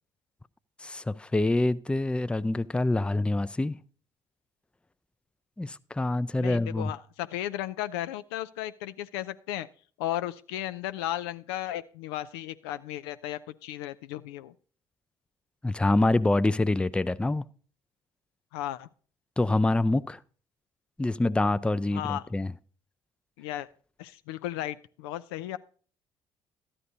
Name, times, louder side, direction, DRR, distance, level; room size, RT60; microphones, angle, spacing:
voice 1, 0.8-3.8 5.6-6.9 15.6-17.4 19.4-20.2 21.0-22.5, left 2 dB, 10° left, 0.4 m, -26 dB
voice 2, 6.4-9.7 10.0-14.5 18.5-18.9 21.9-22.2 23.4-23.7 24.0-25.6, left 13 dB, 75° left, 0.4 m, -35 dB
13.0 x 9.8 x 2.7 m
hypercardioid pair, 50°, 13 cm